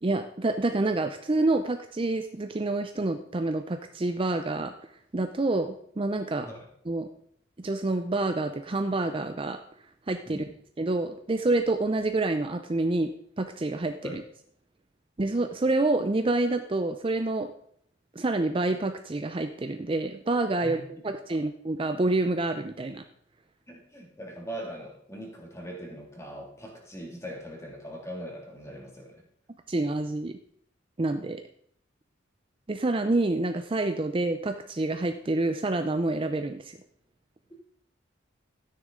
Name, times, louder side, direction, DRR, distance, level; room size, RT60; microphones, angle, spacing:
voice 1, 0.0-4.7 5.1-6.5 6.9-7.1 7.6-9.6 10.1-10.4 10.8-13.1 13.4-14.2 15.2-17.5 18.2-23.0 29.7-30.3 31.0-31.4 32.7-36.8, right 2 dB, 30° right, 7 dB, 0.5 m, -27 dB
voice 2, 23.7-29.3, equal, 15° left, 0 dB, 2.3 m, -41 dB
12.5 x 9.5 x 3.8 m, 0.64 s
head